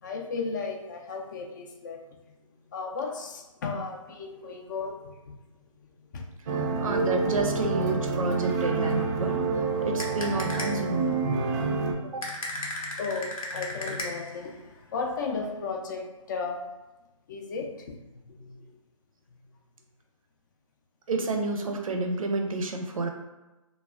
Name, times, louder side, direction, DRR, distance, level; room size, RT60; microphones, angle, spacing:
voice 1, 0.0-2.0 2.7-5.0 6.1-6.2 6.5-6.7 12.2-12.7 13.0-14.5 14.9-16.6 17.3-17.7 18.3-18.6, left 4 dB, 35° left, 2 dB, 0.4 m, -34 dB
sound 1, 6.5-11.9, right 4 dB, 30° right, 0.4 m, -28 dB
voice 2, 6.8-9.4 9.8-11.1 12.0-12.2 21.1-23.1, right 2 dB, 80° right, 3 dB, 0.6 m, -29 dB
sound 2, 10.0-10.9 12.2-14.4, left 1 dB, 85° left, 0.7 m, -36 dB
2.2 x 2.1 x 3.5 m, 1.1 s
figure-of-eight pair, 145°, 17 cm